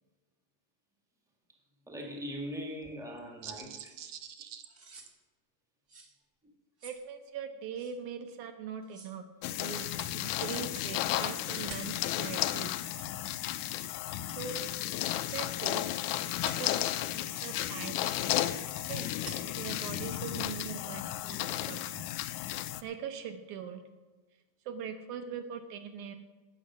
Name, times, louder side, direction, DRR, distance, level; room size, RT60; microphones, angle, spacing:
voice 1, 1.9-3.9, equal, 5° right, 1 dB, 0.6 m, -40 dB
voice 2, 3.4-4.6 6.8-9.2 9.6-9.9 10.1-12.7 14.2-14.8 15.3-15.9 16.6-18.1 18.9-19.1 19.6-22.0 22.8-23.8 24.7-26.2, right 7 dB, 70° right, 6 dB, 2.2 m, -41 dB
sound 1, 3.8-4.0 4.7-5.1 5.9-6.1 6.8-7.0 7.8-7.9 8.8-9.2 9.9-10.2 10.7-11.0 11.7-12.0 12.4-12.5 13.0-13.1 13.8-14.0 14.5-14.7 15.6-15.8 16.4-16.7 17.4-17.6 18.3-18.6 19.2-19.5 20.2-20.4 20.9-21.0, right 3 dB, 55° right, 0.8 m, -49 dB
sound 2, 9.4-22.8, left 13 dB, 80° left, 1.9 m, -33 dB
17.5 x 7.0 x 6.2 m, 1.3 s
omnidirectional pair, 3.9 m